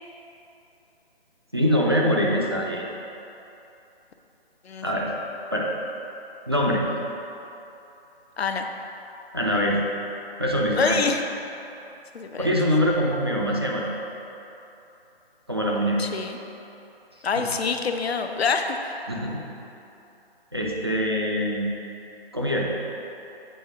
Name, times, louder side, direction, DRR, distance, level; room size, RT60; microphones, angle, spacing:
voice 1, 1.5-2.9 4.8-5.1 5.5-5.7 6.5-6.8 9.3-9.8 10.4-11.0 12.4-14.0 15.5-16.0 17.4-17.5 19.1-19.4 20.5-21.8 22.3-22.7, equal, 25° right, -3 dB, 0.4 m, -23 dB
voice 2, 10.7-11.2 12.1-12.5 16.0-16.4 17.2-19.0, left 5 dB, 85° left, 5 dB, 0.6 m, -26 dB
7.2 x 4.3 x 3.5 m, 2.9 s
figure-of-eight pair, 155°, 31 cm